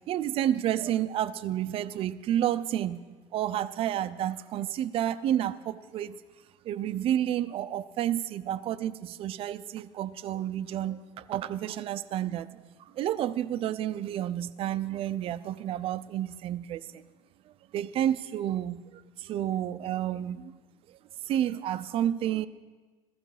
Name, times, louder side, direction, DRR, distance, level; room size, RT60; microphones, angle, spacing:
voice 1, 0.1-3.1 3.3-6.2 6.6-12.5 12.8-17.1 17.5-20.5 21.3-22.5, right 11 dB, 50° right, 14 dB, 0.6 m, -30 dB
15.5 x 14.0 x 5.0 m, 1.3 s
supercardioid pair, 90°, 12 cm